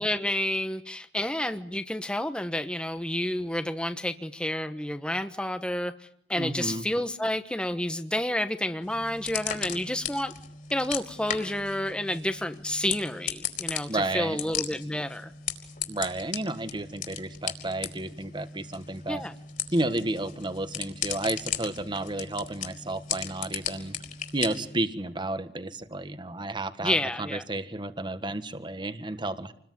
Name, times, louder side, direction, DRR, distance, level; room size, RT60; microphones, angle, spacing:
voice 1, 0.0-10.3 10.7-15.3 19.1-19.3 26.8-27.4, left 1 dB, 5° left, 9 dB, 1.2 m, -30 dB
voice 2, 6.4-6.8 13.9-14.4 15.9-19.2 19.7-24.0 24.3-29.5, right 2 dB, 25° right, 11 dB, 1.6 m, -32 dB
sound 1, 8.8-24.8, left 8 dB, 50° left, 4.4 m, -37 dB
28.5 x 21.0 x 9.6 m, 0.65 s
head